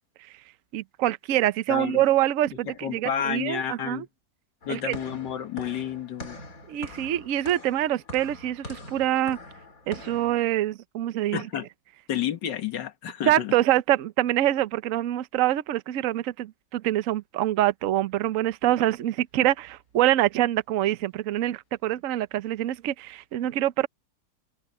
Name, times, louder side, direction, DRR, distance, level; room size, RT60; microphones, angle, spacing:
voice 1, 0.7-4.0 4.7-5.0 6.7-9.4 9.9-11.5 13.3-23.9, right 13 dB, 60° right, 1.0 m, -25 dB
voice 2, 1.7-2.0 2.7-4.1 4.7-6.4 11.3-11.7 12.1-13.6, left 9 dB, 85° left, 2.0 m, -30 dB
sound 1, 4.6-10.4, left 2 dB, 50° left, 3.4 m, -43 dB
omnidirectional pair, 1.9 m